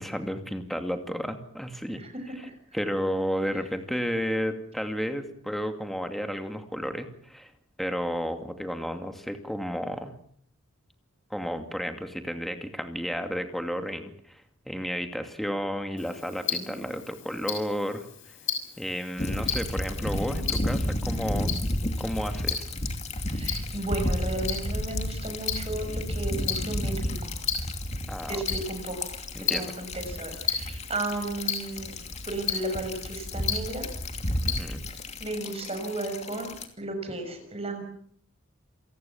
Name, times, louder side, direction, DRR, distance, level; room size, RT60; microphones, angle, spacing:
voice 1, 0.0-2.0 2.7-7.5 7.8-10.2 11.3-18.1 18.8-21.6 22.0-22.7 28.1-28.4 29.3-29.7 34.5-34.8, equal, ahead, 6 dB, 2.4 m, -32 dB
Tick-tock, 16.0-35.0, left 8 dB, 60° left, 6.4 m, -36 dB
voice 2, 16.5-16.8 20.2-20.5 23.3-27.1 28.3-29.1 29.4-32.0 32.3-33.9 35.2-37.8, right 2 dB, 30° right, 5 dB, 6.5 m, -34 dB
sound 1, 19.2-36.7, left 1 dB, 30° left, 2.7 m, -32 dB
28.0 x 18.5 x 7.2 m, 0.62 s
head